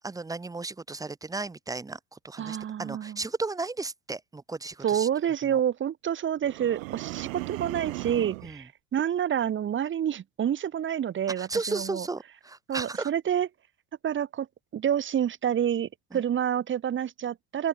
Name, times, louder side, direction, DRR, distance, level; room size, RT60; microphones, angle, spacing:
voice 1, 0.0-5.1 5.4-5.6 8.4-8.6 11.4-13.1 16.1-16.2, right 3 dB, 10° right, 1.4 m, -34 dB
voice 2, 2.4-3.2 4.8-12.1 12.7-13.5 14.0-14.5 14.7-17.7, right 9 dB, 30° right, 2.3 m, -28 dB
sound 1, 6.4-8.5, right 25 dB, 75° right, 1.5 m, -36 dB
open air
supercardioid pair, 130°, 40 cm